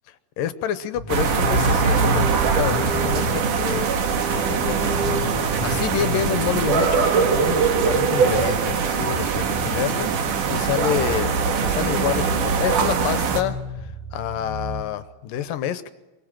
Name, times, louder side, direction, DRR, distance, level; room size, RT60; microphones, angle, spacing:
voice 1, 0.4-3.9 4.3-4.9 5.6-10.1 10.5-15.9, left 10 dB, 75° left, 13 dB, 2.5 m, -28 dB
sound 1, 0.9-7.4 7.7-7.8 8.1-12.7 13.2-14.8, left 3 dB, 15° left, 0.6 m, -34 dB
sound 2, 1.1-13.4, right 5 dB, 65° right, 3.2 m, -22 dB
24.5 x 23.5 x 7.5 m, 1.1 s
omnidirectional pair, 4.0 m